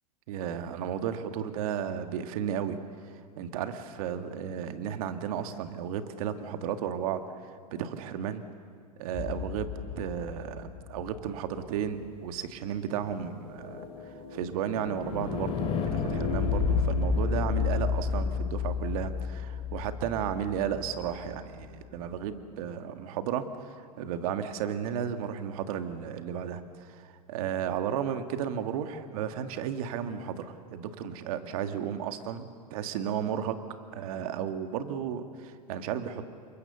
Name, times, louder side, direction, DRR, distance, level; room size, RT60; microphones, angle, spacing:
voice 1, 0.3-2.8 3.4-8.4 9.0-32.5 32.7-33.6 33.9-36.3, right 8 dB, 60° right, 8 dB, 1.9 m, -34 dB
sound 1, 9.1-11.3 13.1-21.2, left 5 dB, 30° left, 3.7 m, -31 dB
29.5 x 23.5 x 6.9 m, 2.1 s
hypercardioid pair, 115°, 20 cm